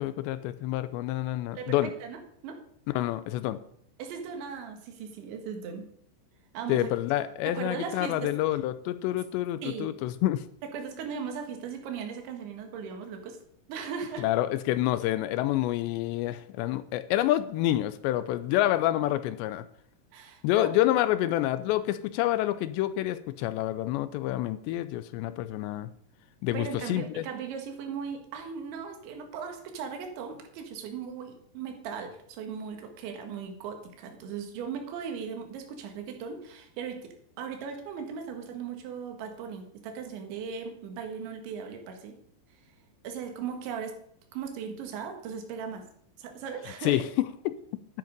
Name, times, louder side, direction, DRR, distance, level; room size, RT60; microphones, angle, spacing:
voice 1, 0.0-1.9 2.9-3.6 6.7-10.4 14.2-19.6 20.4-25.9 26.4-27.2 46.8-47.0 47.5-47.6, left 14 dB, 85° left, 13 dB, 2.8 m, -28 dB
voice 2, 1.6-2.6 4.0-5.9 6.5-6.9 7.5-8.3 9.6-10.0 10.6-13.4 13.7-14.3 20.1-20.7 26.5-37.1 37.4-42.1 43.0-44.0 44.3-45.8 46.2-47.1, right 6 dB, 80° right, 5 dB, 4.0 m, -38 dB
10.5 x 10.5 x 5.3 m, 0.65 s
omnidirectional pair, 5.2 m